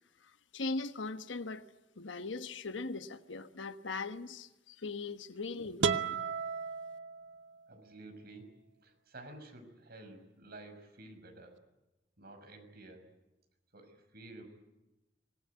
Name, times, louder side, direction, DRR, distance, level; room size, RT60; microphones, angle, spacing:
voice 1, 0.5-1.6 2.0-6.2, left 3 dB, 80° left, 1.2 m, -40 dB
sound 1, 5.8-7.7, right 5 dB, 80° right, 1.0 m, -34 dB
voice 2, 7.7-8.5 8.8-11.6 12.2-13.1 13.7-14.5, right 2 dB, 55° right, 6.0 m, -51 dB
25.5 x 19.5 x 9.6 m
head